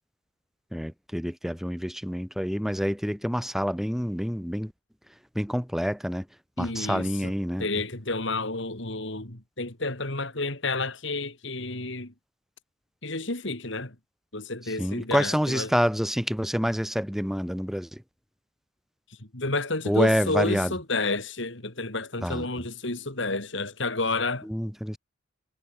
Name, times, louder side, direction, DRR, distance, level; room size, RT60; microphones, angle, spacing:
voice 1, 0.7-4.7 5.4-6.3 6.6-7.7 14.8-18.0 19.9-20.8 22.2-22.5 24.4-25.0, equal, ahead, 7.1 m, -27 dB
voice 2, 6.6-7.3 7.6-12.1 13.0-14.0 14.3-15.7 19.3-24.5, left 3 dB, 60° left, 3.6 m, -30 dB
head